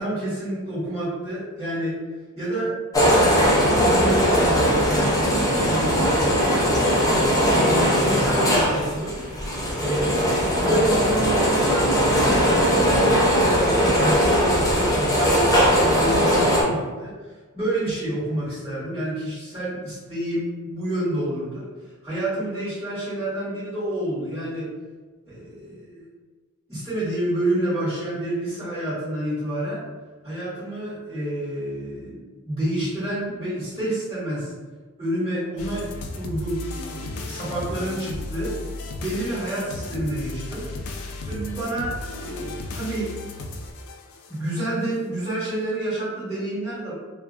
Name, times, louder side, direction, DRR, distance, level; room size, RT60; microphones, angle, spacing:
voice 1, 0.0-2.0 2.4-2.8 3.1-5.3 5.6-6.4 7.0-7.2 7.9-9.2 9.8-10.1 10.4-17.1 17.5-21.6 22.0-24.7 25.2-26.1 26.7-29.8 30.2-34.5 35.0-35.8 36.1-38.6 39.0-40.6 41.2-43.1 44.3-46.9, right 1 dB, 15° right, -13 dB, 1.2 m, -29 dB
sound 1, 2.9-16.6, equal, 15° left, 0.4 m, -19 dB
sound 2, 35.6-44.7, left 2 dB, 85° left, 0.3 m, -35 dB
2.4 x 2.2 x 2.7 m, 1.3 s
head